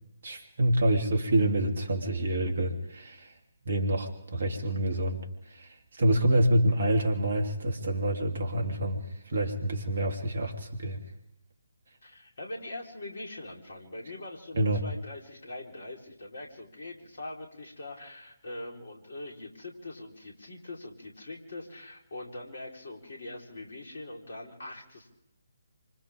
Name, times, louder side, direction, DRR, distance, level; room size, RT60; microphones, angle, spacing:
voice 1, 0.2-3.3 3.7-5.3 5.5-5.7 6.0-9.0 9.3-11.0 14.6-14.8, right 1 dB, 55° right, 3 dB, 3.3 m, -27 dB
voice 2, 12.0-25.1, left 2 dB, 55° left, 0 dB, 4.3 m, -42 dB
28.0 x 25.5 x 3.7 m, 0.85 s
figure-of-eight pair, 140°, 0 cm